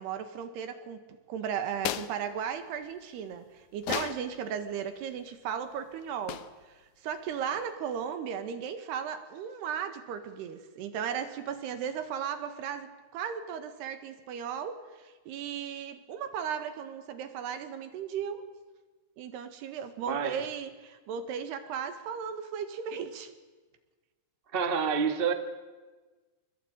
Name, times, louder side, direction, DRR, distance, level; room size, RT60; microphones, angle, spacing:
voice 1, 0.0-18.4 19.2-23.3, right 8 dB, 85° right, 3.7 m, -36 dB
sound 1, 1.7-2.2 3.8-4.3 6.3-6.6, left 11 dB, 80° left, 1.7 m, -34 dB
voice 2, 20.1-20.4 24.5-25.3, right 6 dB, 35° right, 0.8 m, -28 dB
25.0 x 21.5 x 8.9 m
omnidirectional pair, 4.6 m